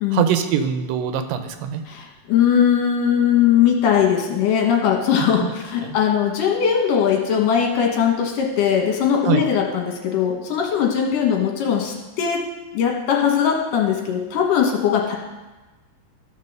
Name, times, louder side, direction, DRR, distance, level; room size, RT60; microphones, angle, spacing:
voice 1, 0.1-1.8 5.4-5.5 5.8-6.0 9.3-9.4, right 9 dB, 85° right, 8 dB, 2.5 m, -22 dB
voice 2, 1.9-12.4 12.7-15.2, left 8 dB, 70° left, 1 dB, 3.0 m, -20 dB
14.0 x 5.4 x 6.6 m, 1.2 s
omnidirectional pair, 4.0 m